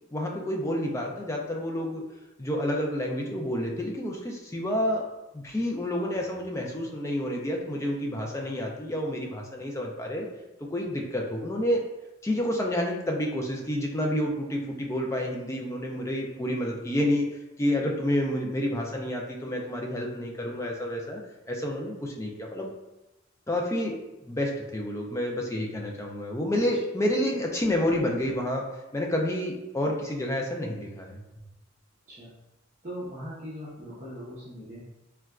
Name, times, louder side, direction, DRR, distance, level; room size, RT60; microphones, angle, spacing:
voice 1, 0.1-2.0 2.4-5.0 5.3-10.3 10.6-11.8 12.2-17.3 17.6-21.2 21.5-22.7 23.5-28.6 28.9-31.2, left 1 dB, 15° left, 0 dB, 0.3 m, -29 dB
voice 2, 32.8-34.8, equal, 35° right, -9 dB, 0.7 m, -40 dB
3.9 x 2.2 x 2.3 m, 0.99 s
head